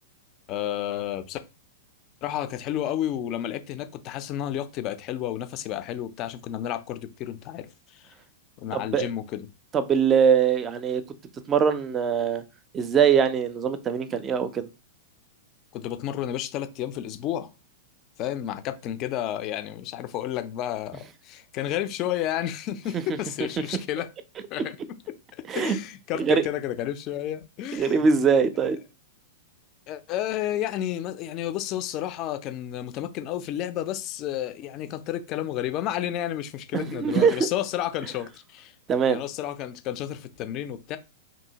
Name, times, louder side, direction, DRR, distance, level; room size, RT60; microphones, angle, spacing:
voice 1, 0.5-1.4 2.2-8.1 8.6-9.5 15.7-17.5 18.2-24.1 24.5-25.0 25.5-28.1 29.9-38.7 39.1-41.0, left 11 dB, 40° left, 0.4 m, -31 dB
voice 2, 8.7-9.1 9.7-11.0 11.5-12.4 12.7-14.7 22.9-23.2 25.5-25.8 26.1-26.4 27.7-28.8 36.7-37.4 38.9-39.2, right 6 dB, 25° right, 0.4 m, -22 dB
2.7 x 2.6 x 2.8 m
hypercardioid pair, 105°, 0 cm